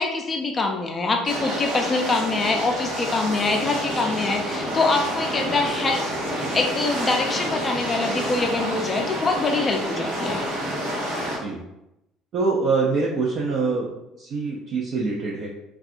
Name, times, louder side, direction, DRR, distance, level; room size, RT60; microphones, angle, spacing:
voice 1, 0.0-10.4, left 3 dB, 30° left, 2 dB, 0.4 m, -24 dB
sound 1, 1.2-11.4, equal, 90° right, 1.0 m, -28 dB
voice 2, 12.3-13.9 14.2-15.5, right 4 dB, 55° right, -3 dB, 0.5 m, -24 dB
2.6 x 2.2 x 2.5 m, 0.89 s
supercardioid pair, 85°, 0 cm